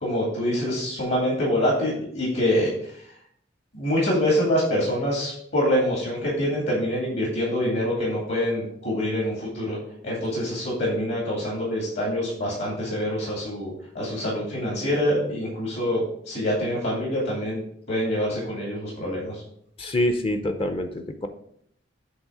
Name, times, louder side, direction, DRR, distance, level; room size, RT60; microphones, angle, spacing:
voice 1, 0.0-3.0 3.7-9.8 10.0-17.6 17.9-19.4, equal, 65° left, -4 dB, 2.2 m, -25 dB
voice 2, 19.8-21.3, left 1 dB, 30° left, 7 dB, 0.5 m, -26 dB
8.0 x 3.2 x 4.8 m, 0.67 s
head